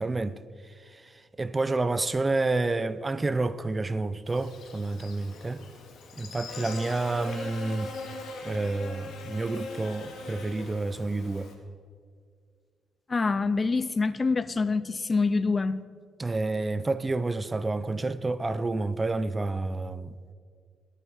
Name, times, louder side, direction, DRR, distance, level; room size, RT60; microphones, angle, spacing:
voice 1, 0.0-5.6 6.2-7.9 8.4-11.5 16.2-20.2, right 3 dB, 20° right, 0.5 m, -29 dB
Buzz, 4.3-11.5, left 3 dB, 70° left, 2.2 m, -41 dB
voice 2, 13.1-15.8, left 4 dB, 30° left, 0.5 m, -26 dB
19.5 x 9.1 x 4.3 m
cardioid pair, 90°, 0 cm